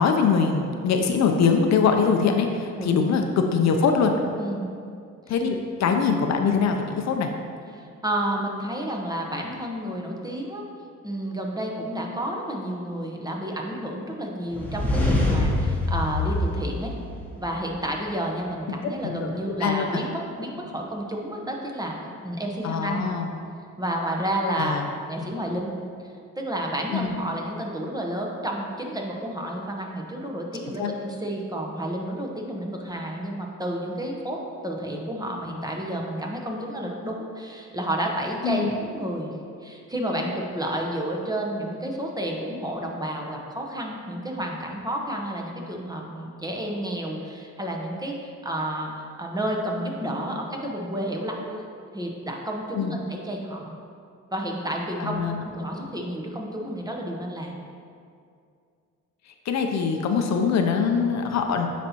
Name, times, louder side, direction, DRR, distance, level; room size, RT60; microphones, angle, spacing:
voice 1, 0.0-4.1 5.3-7.3 19.0-19.3 19.6-20.0 22.6-23.3 24.6-24.8 26.9-27.1 30.8-30.9 38.4-38.7 52.8-52.9 55.0-55.4 59.5-61.7, left 5 dB, 65° left, 4 dB, 0.6 m, -23 dB
voice 2, 4.4-4.7 5.3-5.5 7.7-10.6 11.0-16.9 17.4-22.0 22.2-23.0 23.8-25.7 26.4-39.3 39.6-51.6 51.9-53.7 54.3-57.6, right 1 dB, 15° right, 0 dB, 0.9 m, -30 dB
sound 1, 14.5-17.5, left 2 dB, 5° left, 1.3 m, -25 dB
9.4 x 4.2 x 2.9 m, 2.3 s
cardioid pair, 90°, 30 cm